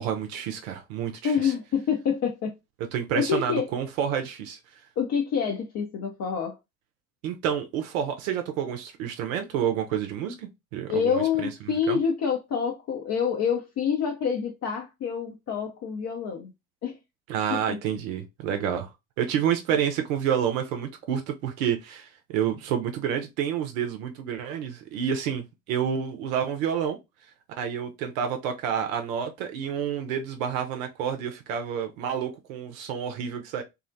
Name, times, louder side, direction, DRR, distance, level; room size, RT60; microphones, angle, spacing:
voice 1, 0.0-1.5 2.9-4.6 7.2-11.5 11.9-12.0 17.3-18.9 19.2-27.0 27.6-33.6, right 8 dB, 75° right, 0.5 m, -29 dB
voice 2, 1.2-2.6 3.1-3.7 5.0-6.6 10.9-16.5 16.8-17.0 17.5-17.8, left 7 dB, 40° left, 0.5 m, -27 dB
2.4 x 2.0 x 2.5 m
figure-of-eight pair, 50°, 41 cm